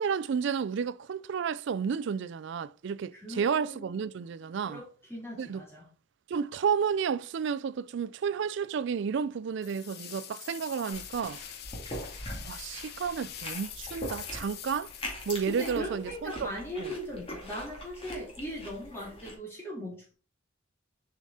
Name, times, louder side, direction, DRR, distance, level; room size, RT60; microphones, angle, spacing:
voice 1, 0.0-4.8 5.4-5.6 6.3-11.4 12.4-14.9 15.3-16.5 16.8-16.9, right 6 dB, 60° right, 0.3 m, -31 dB
voice 2, 3.1-4.0 4.6-5.9 15.5-20.1, equal, 10° left, 3.4 m, -39 dB
sound 1, 9.6-16.3, left 11 dB, 50° left, 0.7 m, -45 dB
sound 2, 10.9-19.3, left 1 dB, 30° left, 2.2 m, -42 dB
6.7 x 4.9 x 4.1 m
head